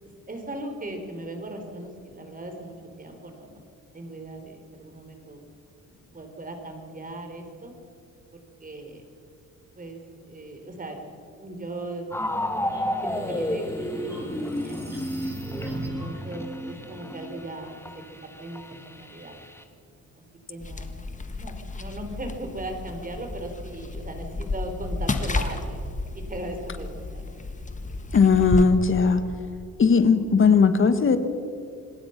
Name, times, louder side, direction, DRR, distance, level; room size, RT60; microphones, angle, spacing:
voice 1, 0.0-3.6 3.9-5.4 6.1-7.7 8.6-9.0 9.8-11.0 11.4-14.9 15.8-17.8 18.2-19.4 20.5-25.8 26.3-26.9 27.1-27.2, right 1 dB, 30° right, 4 dB, 4.6 m, -38 dB
sound 1, 12.1-19.6, left 1 dB, 10° left, 2.0 m, -32 dB
sound 2, 12.7-16.2, right 1 dB, 10° right, 7.1 m, -39 dB
sound 3, 20.6-28.7, left 3 dB, 25° left, 1.7 m, -32 dB
voice 2, 28.1-29.2 29.8-31.2, left 5 dB, 40° left, 10 dB, 1.7 m, -18 dB
26.5 x 19.5 x 6.1 m, 2.4 s
cardioid pair, 90°, 30 cm